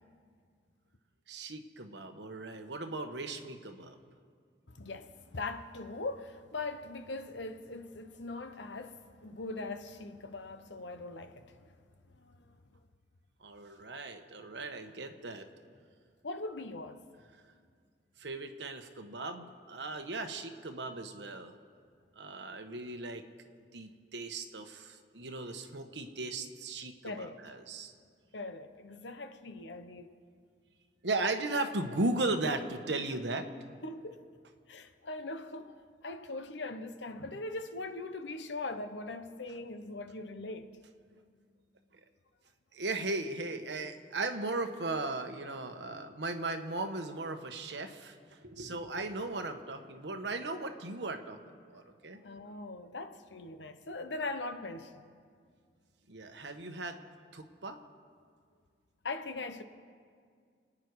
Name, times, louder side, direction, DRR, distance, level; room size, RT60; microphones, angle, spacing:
voice 1, 1.3-4.0 13.4-15.5 18.2-21.5 22.2-23.3 23.7-27.9 31.0-33.5 41.9-42.0 42.7-48.2 48.4-52.2 56.1-57.0 57.3-57.8, right 2 dB, 75° right, 1.2 m, -37 dB
voice 2, 4.7-11.8 12.1-12.6 16.2-17.0 27.0-27.4 28.3-30.1 33.8-34.2 34.7-40.7 52.2-55.0 59.0-59.6, left 2 dB, 85° left, 1.0 m, -41 dB
29.0 x 9.9 x 4.8 m
head